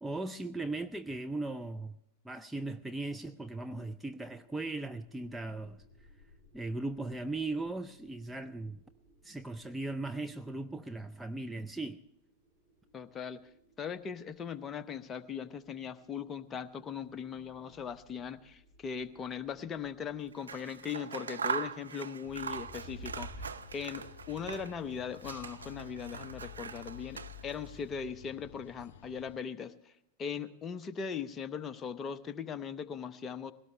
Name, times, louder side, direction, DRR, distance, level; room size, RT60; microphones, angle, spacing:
voice 1, 0.0-2.0 2.2-5.8 6.5-8.8 9.2-12.0, right 2 dB, 5° right, 0.5 m, -38 dB
sound 1, 4.0-23.5, right 1 dB, 30° right, 5.8 m, -58 dB
voice 2, 12.9-13.4 13.8-29.9 30.2-33.5, left 7 dB, 25° left, 0.9 m, -39 dB
Scissors, 20.3-24.8 25.1-27.7, right 5 dB, 75° right, 0.7 m, -41 dB
sound 2, 22.2-29.4, left 10 dB, 55° left, 1.6 m, -52 dB
20.0 x 17.5 x 3.2 m
figure-of-eight pair, 90°, 0 cm